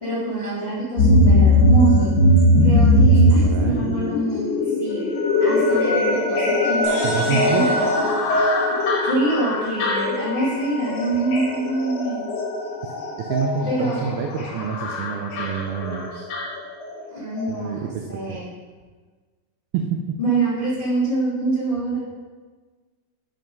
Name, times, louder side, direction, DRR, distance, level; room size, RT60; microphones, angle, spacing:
voice 1, 0.0-2.1 2.6-5.0 5.4-8.0 9.0-12.2 13.6-14.0 17.1-18.5 20.2-22.0, right 2 dB, 45° left, -10 dB, 0.8 m, -25 dB
sound 1, 1.0-17.1 17.4-17.5, left 1 dB, 70° left, 1.5 m, -20 dB
sound 2, 1.4-4.3 4.6-14.0, left 1 dB, 90° left, 2.9 m, -30 dB
voice 2, 3.0-4.1 7.0-7.7 12.8-16.3 17.5-18.4 19.7-20.2, right 7 dB, 85° right, 3 dB, 2.2 m, -28 dB
sound 3, 6.8-9.4, right 1 dB, 65° right, 2.8 m, -38 dB
7.7 x 3.5 x 5.3 m, 1.4 s
omnidirectional pair, 4.8 m